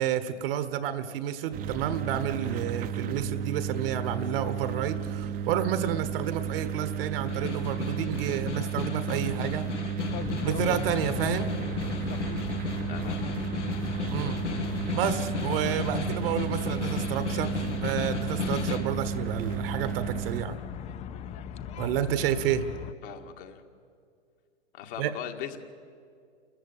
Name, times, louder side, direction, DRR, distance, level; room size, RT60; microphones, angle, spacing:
voice 1, 0.0-9.7 10.4-11.5 14.1-14.4 14.9-20.6 21.8-22.7 25.0-25.1, right 10 dB, 55° right, 12 dB, 1.5 m, -30 dB
sound 1, 1.5-20.4, right 8 dB, 25° right, 0.9 m, -33 dB
Snare drum, 7.1-19.0, left 7 dB, 80° left, 2.2 m, -35 dB
sound 2, 10.1-22.9, left 9 dB, 20° left, 0.5 m, -39 dB
voice 2, 12.9-13.2 13.7-13.8 23.0-23.6 24.7-25.6, left 10 dB, 50° left, 4 dB, 2.1 m, -39 dB
28.0 x 14.0 x 9.0 m, 2.3 s
hypercardioid pair, 120°, 35 cm